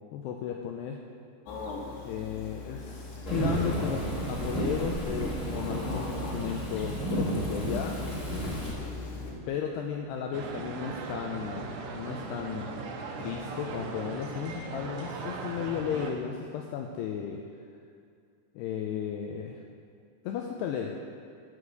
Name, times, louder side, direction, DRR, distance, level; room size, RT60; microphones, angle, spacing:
voice 1, 0.1-1.0 2.0-8.0 9.5-12.7 13.2-17.4 18.6-19.6 20.2-21.0, left 8 dB, 90° left, 2 dB, 2.3 m, -34 dB
sound 1, 1.5-9.3, left 2 dB, 65° left, 3.3 m, -39 dB
Thunderstorm / Rain, 3.2-8.7, right 1 dB, 15° left, 2.1 m, -32 dB
sound 2, 10.3-16.1, right 4 dB, 75° right, 2.9 m, -38 dB
9.5 x 9.4 x 6.6 m, 2.3 s
omnidirectional pair, 5.5 m